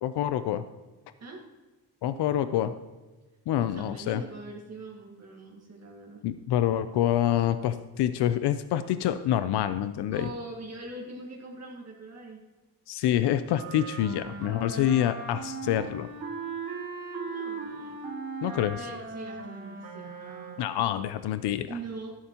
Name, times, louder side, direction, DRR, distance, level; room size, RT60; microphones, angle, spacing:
voice 1, 0.0-0.6 2.0-2.7 3.5-4.2 6.2-10.3 12.9-16.1 18.4-18.8 20.6-21.8, left 11 dB, 90° left, 12 dB, 0.6 m, -27 dB
voice 2, 3.6-6.2 10.1-12.4 17.3-18.0 18.8-20.6 21.7-22.1, right 2 dB, 40° right, -2 dB, 1.7 m, -42 dB
sound 1, 13.5-20.8, right 4 dB, 75° right, 3.9 m, -38 dB
12.5 x 11.0 x 2.9 m, 1.2 s
cardioid pair, 120°, 39 cm